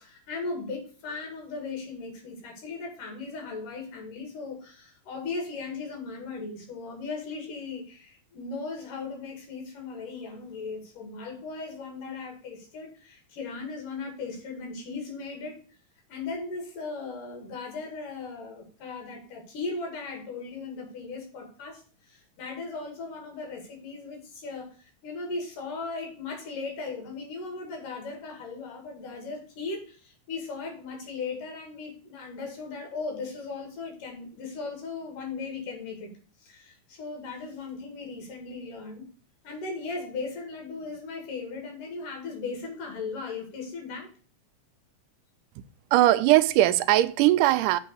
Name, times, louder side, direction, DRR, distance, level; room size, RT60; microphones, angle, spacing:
voice 1, 0.0-15.6 16.1-36.1 36.4-39.1 39.4-44.1, left 4 dB, 80° left, 3.8 m, -37 dB
voice 2, 45.9-47.8, right 15 dB, 85° right, 2.1 m, -20 dB
8.2 x 3.8 x 6.8 m
omnidirectional pair, 3.7 m